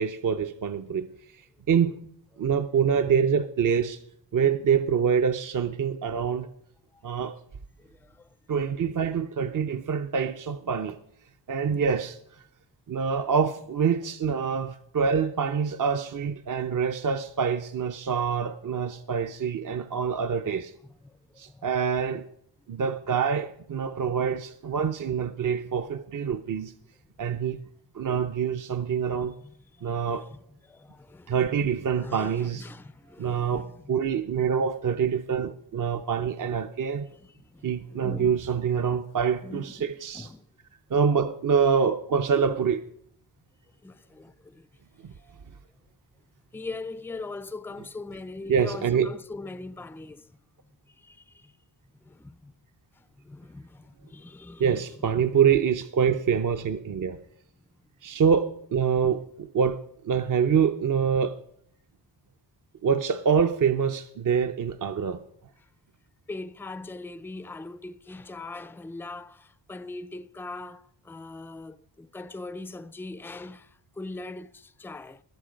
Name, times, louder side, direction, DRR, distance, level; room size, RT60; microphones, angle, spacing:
voice 1, 0.0-1.4 1.7-2.0 2.4-4.0 4.3-6.5 7.0-7.4 8.5-11.0 11.5-12.4 12.9-20.7 21.4-22.3 22.7-26.7 27.2-27.6 27.9-29.3 29.8-30.3 31.3-32.7 33.2-37.1 37.6-40.3 40.9-42.8 48.5-49.1 54.6-57.2 58.0-61.4 62.8-65.2, right 7 dB, 45° right, 0.7 m, -25 dB
voice 2, 7.8-8.3 11.7-11.9 21.0-21.7 29.4-30.4 30.6-31.3 31.7-33.9 37.1-38.4 39.4-40.5 43.8-44.7 46.5-50.3 50.9-51.5 52.0-52.5 53.0-54.9 55.1-55.3 66.3-75.2, left 3 dB, 5° left, 0.4 m, -41 dB
20.0 x 7.5 x 5.1 m
cardioid pair, 95°, 45 cm